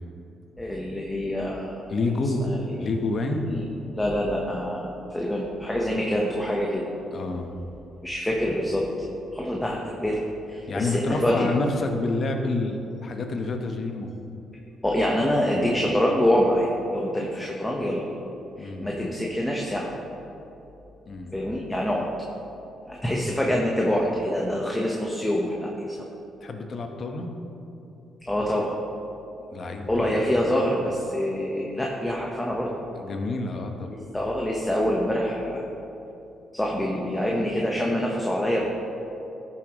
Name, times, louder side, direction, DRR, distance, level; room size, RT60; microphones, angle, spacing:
voice 1, 0.6-1.9 2.4-2.9 3.5-3.6 3.9-6.8 8.0-8.9 9.3-11.5 14.8-18.1 18.6-19.9 21.3-22.1 22.9-26.0 28.3-28.7 29.8-32.7 34.1-35.6 36.5-38.6, equal, 10° left, -2 dB, 1.1 m, -26 dB
voice 2, 1.9-2.5 2.8-3.5 7.1-7.5 10.7-14.1 18.6-18.9 21.1-21.3 23.1-23.3 26.4-27.3 29.5-30.1 33.0-34.0, left 3 dB, 50° left, 4 dB, 1.1 m, -28 dB
13.5 x 7.3 x 3.1 m, 2.9 s
cardioid pair, 90°, 0 cm